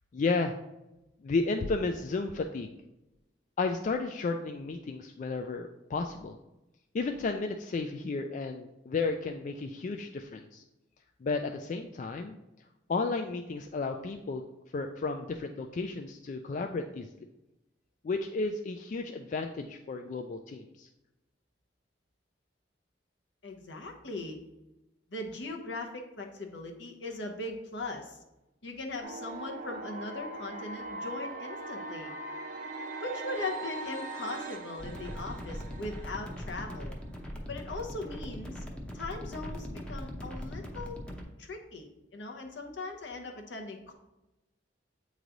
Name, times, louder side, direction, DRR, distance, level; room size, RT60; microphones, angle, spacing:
voice 1, 0.1-0.5 1.2-2.7 3.6-6.4 6.9-10.6 11.2-12.4 12.9-14.4 14.7-17.1 18.0-20.9, left 3 dB, 45° left, 5 dB, 0.3 m, -33 dB
voice 2, 23.4-24.4 25.1-28.2 28.6-32.1 33.0-36.9 37.5-38.6 38.9-41.0 41.4-43.9, left 2 dB, 70° left, 2 dB, 1.0 m, -39 dB
sound 1, 29.0-37.0, right 2 dB, 45° right, 0.7 m, -41 dB
sound 2, 34.8-41.2, equal, 5° left, 0.7 m, -40 dB
8.1 x 3.2 x 3.8 m, 0.97 s
head